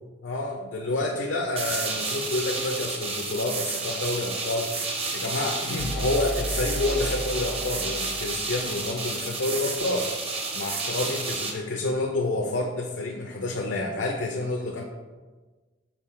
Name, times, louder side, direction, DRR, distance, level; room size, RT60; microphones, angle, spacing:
voice 1, 0.2-4.9 5.1-10.1 10.5-14.8, left 2 dB, 75° left, 1 dB, 0.6 m, -29 dB
sound 1, 1.6-11.5, right 3 dB, 30° right, 0.7 m, -31 dB
sound 2, 5.8-9.5, equal, ahead, 0.3 m, -34 dB
5.9 x 4.7 x 3.7 m, 1.3 s
head